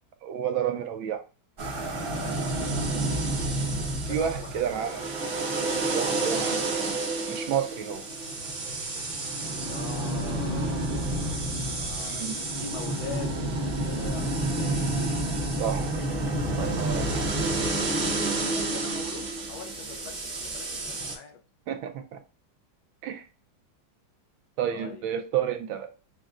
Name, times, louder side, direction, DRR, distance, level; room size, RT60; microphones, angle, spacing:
voice 1, 0.2-1.2 4.0-5.0 5.9-6.9 7.3-8.0 12.1-12.3 15.6-16.1 16.6-17.3 21.7-22.2 23.0-23.2 24.6-25.9, right 9 dB, 75° right, 1.3 m, -30 dB
sound 1, 1.6-21.2, right 2 dB, 50° right, 0.6 m, -29 dB
voice 2, 2.0-2.4 4.0-4.9 9.7-10.9 11.6-13.4 13.8-14.8 18.3-21.4 24.7-25.0, left 6 dB, 75° left, 1.4 m, -42 dB
6.3 x 2.3 x 2.4 m
omnidirectional pair, 2.3 m